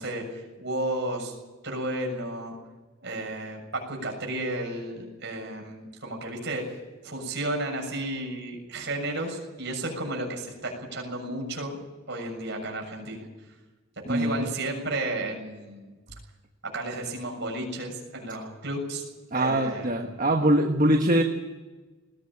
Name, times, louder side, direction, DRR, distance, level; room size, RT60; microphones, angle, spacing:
voice 1, 0.0-1.3 1.6-2.6 3.0-6.8 7.0-11.8 12.1-13.3 14.1-16.0 16.6-19.0 19.3-19.9, right 1 dB, 50° right, 1 dB, 6.9 m, -33 dB
voice 2, 14.0-14.4 19.3-21.2, right 1 dB, 35° right, 3 dB, 1.5 m, -23 dB
20.5 x 16.5 x 8.8 m, 1.2 s
head